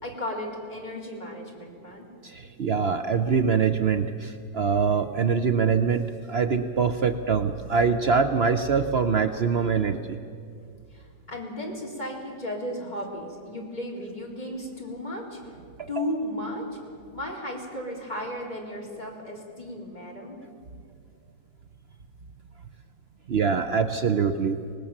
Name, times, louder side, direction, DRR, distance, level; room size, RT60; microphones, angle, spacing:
voice 1, 0.0-2.1 10.9-15.4 15.9-16.7 17.1-20.4, left 1 dB, 25° left, -3 dB, 4.1 m, -35 dB
voice 2, 2.2-10.2 15.8-16.0 23.3-24.6, right 6 dB, 80° right, 9 dB, 0.5 m, -24 dB
25.0 x 19.0 x 7.2 m, 2.3 s
omnidirectional pair, 2.0 m